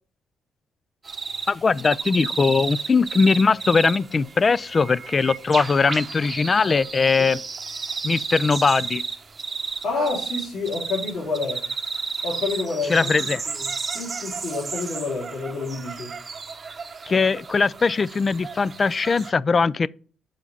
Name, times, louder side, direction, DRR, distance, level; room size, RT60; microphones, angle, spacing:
sound 1, 1.0-19.3, right 5 dB, 35° right, 0.9 m, -33 dB
voice 1, 1.5-7.4 8.0-9.0 12.9-13.4 17.1-19.9, left 4 dB, 35° left, 0.3 m, -20 dB
voice 2, 9.8-11.6 12.2-13.1 13.6-16.1, left 4 dB, 65° left, 3.5 m, -28 dB
5.8 x 4.9 x 6.6 m
cardioid pair, 90°, 0 cm